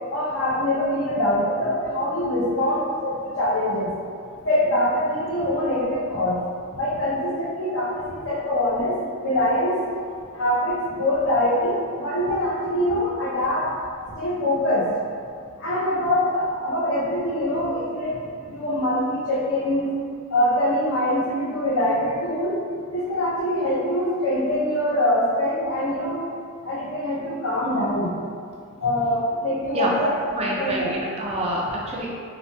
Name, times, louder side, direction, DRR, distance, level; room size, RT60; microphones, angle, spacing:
voice 1, 0.1-2.8 3.4-3.9 4.4-6.3 6.8-8.9 9.2-9.7 10.4-13.7 14.2-14.8 15.6-18.1 18.5-19.9 20.3-22.6 22.9-26.2 26.6-28.1 28.8-30.9, left 1 dB, 60° left, -6 dB, 0.7 m, -23 dB
voice 2, 30.4-32.1, right 1 dB, 30° right, -3 dB, 0.4 m, -27 dB
3.2 x 2.1 x 2.7 m, 2.3 s
head